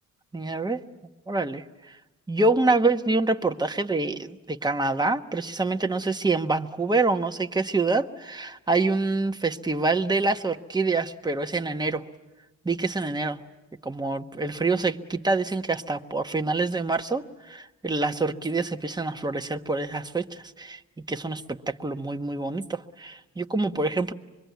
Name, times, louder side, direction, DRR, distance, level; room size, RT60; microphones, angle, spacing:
voice 1, 0.3-0.8 1.3-1.6 2.3-12.0 12.6-13.4 13.8-20.8 21.1-24.1, right 3 dB, 15° right, 6 dB, 1.2 m, -26 dB
25.5 x 22.5 x 9.4 m, 1.1 s
cardioid pair, 90°, 30 cm